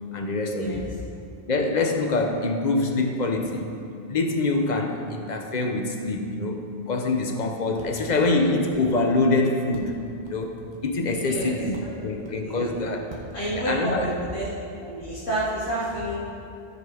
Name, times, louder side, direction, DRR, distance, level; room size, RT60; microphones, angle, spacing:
voice 1, 0.1-0.8 1.5-3.8 4.1-6.6 6.9-10.0 10.3-13.1 13.5-14.1, left 2 dB, 40° left, 3 dB, 1.0 m, -25 dB
sound 1, 7.4-7.5 7.8-8.3 8.7-8.8 9.3-9.4 9.7-11.1 11.4-12.3 12.8-12.9 13.1-13.3, right 2 dB, 25° right, 1.3 m, -44 dB
voice 2, 11.2-11.6 11.8-12.1 12.4-12.8 13.3-14.5 14.8-16.2, right 1 dB, 90° left, -13 dB, 3.0 m, -30 dB
15.5 x 5.3 x 5.0 m, 2.5 s
omnidirectional pair, 1.2 m